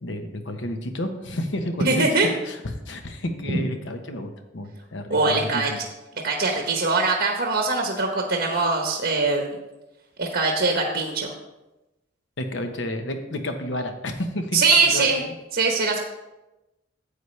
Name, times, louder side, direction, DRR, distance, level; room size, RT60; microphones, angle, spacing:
voice 1, 0.0-2.1 2.4-5.8 12.4-14.6 14.9-15.3, left 1 dB, 70° left, 6 dB, 1.0 m, -31 dB
voice 2, 1.8-2.3 3.5-3.6 5.1-5.7 6.2-9.6 10.2-11.3 14.5-15.2 15.5-16.0, right 3 dB, 55° right, 2 dB, 1.0 m, -22 dB
10.0 x 8.2 x 3.2 m, 1.0 s
head